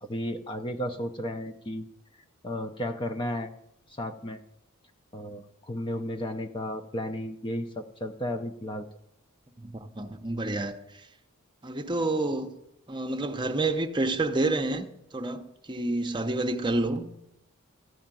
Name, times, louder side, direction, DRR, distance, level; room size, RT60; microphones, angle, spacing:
voice 1, 0.0-1.9 2.4-3.5 3.9-4.4 5.1-8.9, left 1 dB, 20° left, 0.5 m, -33 dB
voice 2, 9.6-10.7 11.6-12.5 12.9-14.9 15.1-17.1, right 2 dB, 20° right, 0.7 m, -28 dB
14.0 x 4.9 x 8.9 m
head